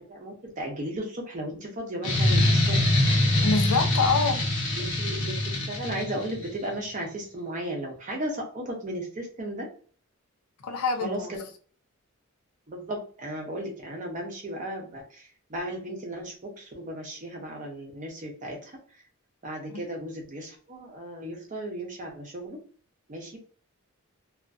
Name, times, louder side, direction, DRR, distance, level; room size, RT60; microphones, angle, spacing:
voice 1, 0.0-2.8 4.7-9.7 11.0-11.4 12.7-18.8 19.4-22.6 23.1-23.4, right 1 dB, 35° right, 0.6 m, -35 dB
sound 1, 2.0-6.5, left 1 dB, 60° left, 0.9 m, -24 dB
voice 2, 3.4-4.5 10.6-11.3, left 4 dB, 90° left, 0.5 m, -25 dB
2.5 x 2.4 x 2.3 m
head